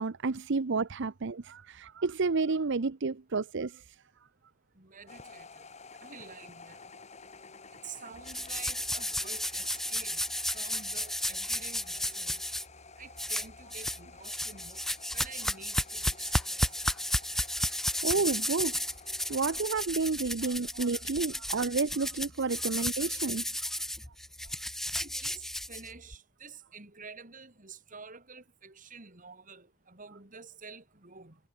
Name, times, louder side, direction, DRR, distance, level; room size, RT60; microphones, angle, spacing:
voice 1, 0.0-4.0 18.0-18.9 19.3-23.7, right 4 dB, 60° right, 0.7 m, -31 dB
voice 2, 4.8-5.6 6.0-6.8 7.7-10.2 10.5-12.4 13.0-14.8 15.1-16.6 24.9-31.4, right 5 dB, 40° right, 4.1 m, -49 dB
sound 1, 5.1-19.7, left 4 dB, 35° left, 7.2 m, -52 dB
sound 2, 8.3-12.6 13.2-14.0 14.2-26.1, left 1 dB, ahead, 0.4 m, -33 dB
head